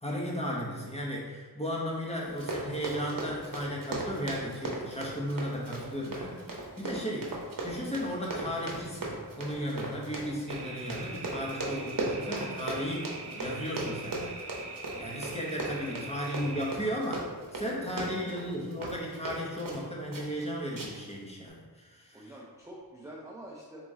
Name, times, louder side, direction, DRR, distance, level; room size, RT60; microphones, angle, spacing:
voice 1, 0.0-7.3 7.6-14.4 15.0-22.3, equal, 15° left, -3 dB, 0.9 m, -35 dB
Run, 2.3-19.8 20.1-20.4 20.8-21.1 21.5-21.6, right 2 dB, 55° right, 0.9 m, -37 dB
sound 1, 10.5-16.7, right 4 dB, 70° right, 0.6 m, -44 dB
voice 2, 13.8-14.2 15.8-16.1 17.8-18.4 22.1-23.8, right 1 dB, 10° right, -3 dB, 0.5 m, -47 dB
3.9 x 3.0 x 3.6 m, 1.4 s
wide cardioid pair, 75°, 41 cm